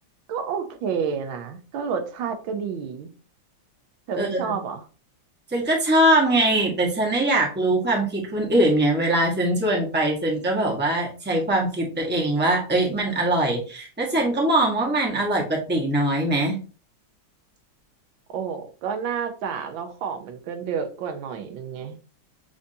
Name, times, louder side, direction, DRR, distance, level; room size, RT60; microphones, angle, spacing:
voice 1, 0.3-3.1 4.1-4.8 18.3-22.0, right 6 dB, 80° right, 7 dB, 1.5 m, -30 dB
voice 2, 4.1-4.6 5.5-16.6, right 1 dB, 10° right, -1 dB, 0.8 m, -22 dB
6.9 x 2.6 x 2.7 m, 0.37 s
omnidirectional pair, 2.1 m